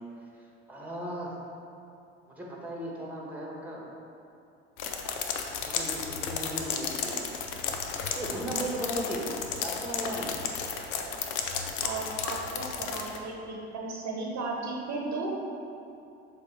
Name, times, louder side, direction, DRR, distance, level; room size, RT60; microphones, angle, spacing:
voice 1, 0.7-1.4 2.3-3.8 5.6-7.2 8.1-10.4, right 1 dB, 5° right, -3 dB, 1.5 m, -36 dB
sound 1, 4.8-13.2, left 6 dB, 70° left, 0.7 m, -33 dB
voice 2, 11.8-15.3, right 3 dB, 55° right, -2 dB, 1.0 m, -35 dB
6.8 x 3.2 x 4.4 m, 2.6 s
hypercardioid pair, 65°, 32 cm